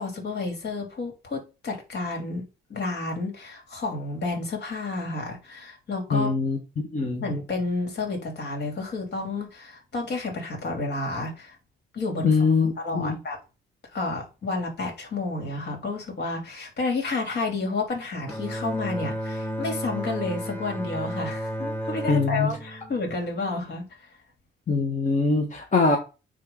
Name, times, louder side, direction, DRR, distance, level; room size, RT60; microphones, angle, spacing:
voice 1, 0.0-2.4 2.7-6.3 7.2-11.6 11.9-12.4 12.8-13.4 13.9-23.9, left 3 dB, 60° left, 3.0 m, -30 dB
voice 2, 6.1-7.2 12.2-13.2 22.1-22.5 24.7-26.0, left 4 dB, 40° left, 1.5 m, -23 dB
Bowed string instrument, 18.3-23.7, right 1 dB, 10° left, 1.6 m, -33 dB
9.7 x 3.5 x 3.9 m
cardioid pair, 90°, 20 cm